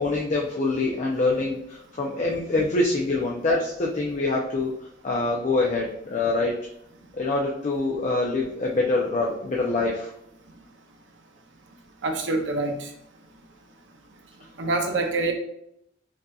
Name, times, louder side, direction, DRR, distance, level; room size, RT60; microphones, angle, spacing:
voice 1, 0.0-4.7 5.0-6.5 7.1-10.1, left 2 dB, 40° left, -2 dB, 0.5 m, -25 dB
voice 2, 12.0-12.9 14.6-15.3, right 2 dB, 75° right, 4 dB, 0.6 m, -25 dB
5.2 x 2.7 x 2.3 m, 0.76 s
head